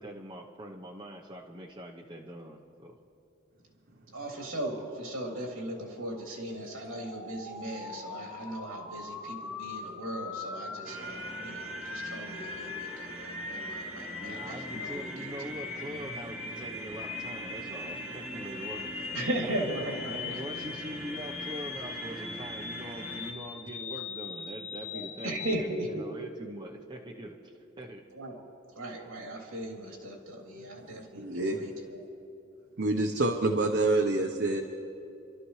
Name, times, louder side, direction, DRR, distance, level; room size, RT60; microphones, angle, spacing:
voice 1, 0.0-3.0 14.2-19.1 19.4-19.6 20.1-28.0, equal, 20° right, -1 dB, 0.9 m, -43 dB
voice 2, 4.1-15.3 19.1-20.4 24.9-26.1 28.1-28.4 28.7-32.1, right 1 dB, 70° right, -1 dB, 3.1 m, -37 dB
sound 1, 6.5-25.5, left 5 dB, 80° left, 2.3 m, -41 dB
sound 2, 10.9-23.3, right 2 dB, 5° right, 1.7 m, -42 dB
voice 3, 31.2-31.6 32.8-34.6, right 2 dB, 55° right, 2 dB, 0.9 m, -27 dB
28.0 x 12.5 x 3.2 m, 2.9 s
head